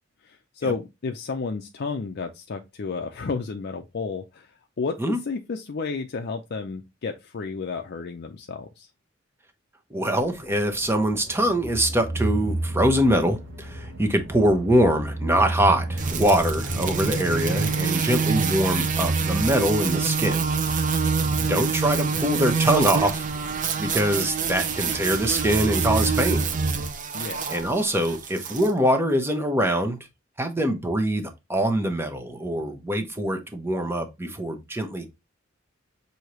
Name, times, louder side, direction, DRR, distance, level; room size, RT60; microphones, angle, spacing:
voice 1, 0.2-8.9 21.2-21.5 27.1-27.4, left 4 dB, 55° left, 0.5 m, -32 dB
voice 2, 9.9-20.9 21.5-26.5 27.5-30.0 30.4-35.1, right 1 dB, 10° right, 0.8 m, -24 dB
sound 1, 10.2-26.9, right 1 dB, 85° right, 1.1 m, -32 dB
sound 2, 16.0-28.7, right 5 dB, 40° right, 0.6 m, -26 dB
6.3 x 2.8 x 3.0 m
head